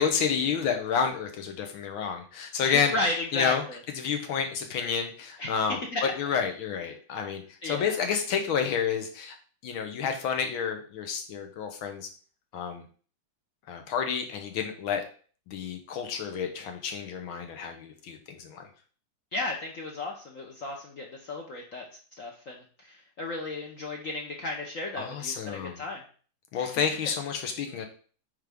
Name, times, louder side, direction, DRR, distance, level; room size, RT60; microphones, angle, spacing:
voice 1, 0.0-3.6 4.0-9.4 9.6-12.1 12.5-12.8 13.7-15.0 15.5-18.7 25.0-25.8 26.5-27.9, left 7 dB, 80° left, 5 dB, 1.9 m, -30 dB
voice 2, 2.6-3.8 5.4-5.5 5.9-6.2 7.6-8.0 19.3-21.8 22.2-26.0 26.6-26.7, left 2 dB, 55° left, 0 dB, 1.0 m, -34 dB
9.0 x 3.8 x 3.5 m, 0.42 s
omnidirectional pair, 2.2 m